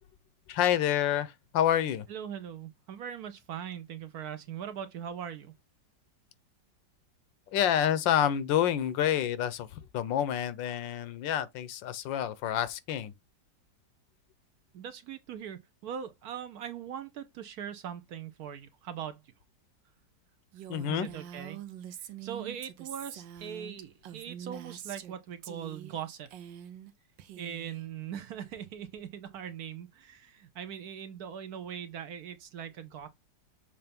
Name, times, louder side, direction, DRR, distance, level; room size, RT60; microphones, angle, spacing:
voice 1, 0.5-2.1 7.5-13.1 20.7-21.1, left 10 dB, 80° left, 1.4 m, -28 dB
voice 2, 2.1-5.5 14.7-19.2 20.9-21.6 22.0-26.3 27.4-33.1, right 8 dB, 65° right, 1.0 m, -41 dB
Female speech woman speaking, 20.5-25.2 25.4-26.0 26.3-26.9 27.2-27.8, right 10 dB, 85° right, 1.5 m, -45 dB
6.9 x 2.7 x 5.2 m
omnidirectional pair, 2.0 m